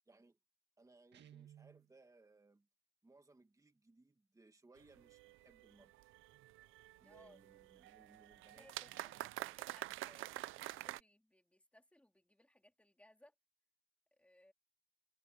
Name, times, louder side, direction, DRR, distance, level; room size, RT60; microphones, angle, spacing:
voice 1, 0.1-0.4 0.8-2.7 3.0-5.9 7.0-9.6, right 2 dB, 15° right, 1.9 m, -66 dB
Guitar, 1.1-1.9, right 10 dB, 60° right, 1.8 m, -59 dB
sound 1, 4.8-11.0, right 16 dB, 85° right, 0.6 m, -48 dB
voice 2, 7.0-7.4 8.5-13.3 14.1-14.5, left 1 dB, 5° left, 3.6 m, -66 dB
cardioid pair, 90°, 20 cm